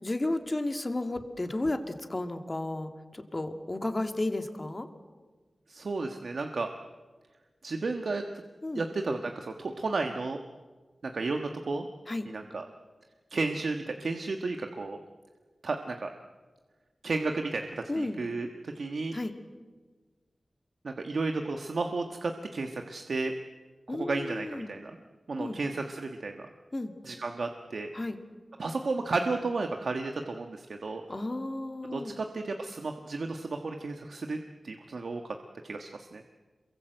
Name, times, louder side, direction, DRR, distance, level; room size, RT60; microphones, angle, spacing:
voice 1, 0.0-4.9 8.6-8.8 12.1-12.3 17.9-18.2 19.1-19.3 23.9-24.7 25.4-25.6 26.7-26.9 27.9-28.2 31.1-32.1, left 2 dB, 30° left, 6 dB, 2.4 m, -33 dB
voice 2, 5.7-6.7 7.6-8.4 8.7-10.4 11.0-11.9 12.2-12.6 13.3-15.0 15.6-16.1 17.0-19.2 20.8-23.3 23.9-25.0 25.3-26.5 27.0-27.9 28.6-31.0 31.9-34.4 34.6-35.2 35.6-36.2, right 3 dB, 75° right, 4 dB, 1.5 m, -33 dB
27.5 x 23.0 x 7.9 m, 1.4 s
wide cardioid pair, 65°, 0 cm